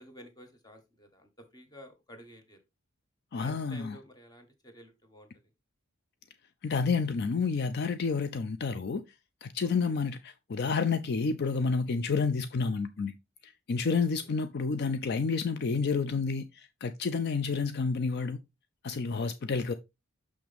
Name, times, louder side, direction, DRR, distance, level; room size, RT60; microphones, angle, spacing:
voice 1, 0.0-2.6 3.3-5.3 9.6-9.9 13.9-14.3, equal, 20° left, 1.4 m, -52 dB
voice 2, 3.3-4.0 6.6-9.0 9.4-13.1 13.4-18.4 18.8-19.7, left 4 dB, 50° left, 0.4 m, -30 dB
6.3 x 5.9 x 3.4 m
head